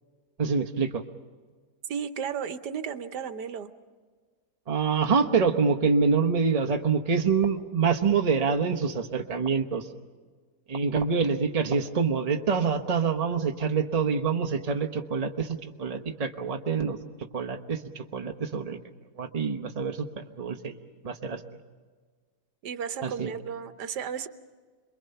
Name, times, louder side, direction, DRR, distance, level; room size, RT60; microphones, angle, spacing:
voice 1, 0.4-1.0 4.7-9.9 10.7-17.0 17.3-18.8 19.2-20.8 21.0-21.4 23.0-23.3, right 5 dB, 25° right, 5 dB, 1.0 m, -26 dB
voice 2, 1.9-3.7 22.6-24.3, right 7 dB, 85° right, 10 dB, 1.5 m, -34 dB
27.0 x 22.5 x 5.6 m, 1.5 s
omnidirectional pair, 1.7 m